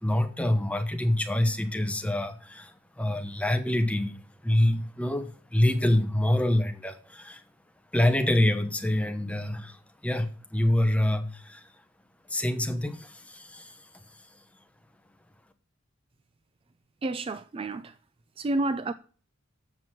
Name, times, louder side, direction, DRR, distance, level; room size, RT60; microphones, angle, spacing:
voice 1, 0.0-7.4 7.9-11.7 12.3-13.8, left 1 dB, 5° left, 0.9 m, -26 dB
voice 2, 17.0-17.9 18.4-18.9, right 2 dB, 25° right, 0.3 m, -30 dB
7.5 x 6.0 x 6.1 m
head